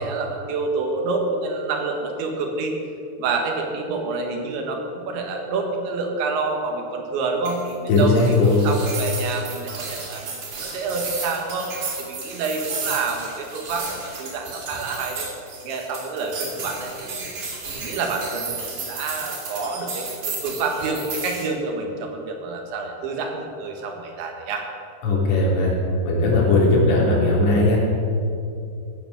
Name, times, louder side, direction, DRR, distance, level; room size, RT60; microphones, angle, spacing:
voice 1, 0.0-2.8 3.2-15.3 15.6-17.3 17.7-24.7, right 3 dB, 70° right, 3 dB, 3.8 m, -28 dB
sound 1, 7.4-21.5, right 4 dB, 45° right, 4.2 m, -33 dB
voice 2, 7.9-8.6 25.0-25.7 26.1-27.8, left 2 dB, 90° left, -4 dB, 5.9 m, -18 dB
16.5 x 9.2 x 7.3 m, 2.6 s
omnidirectional pair, 5.5 m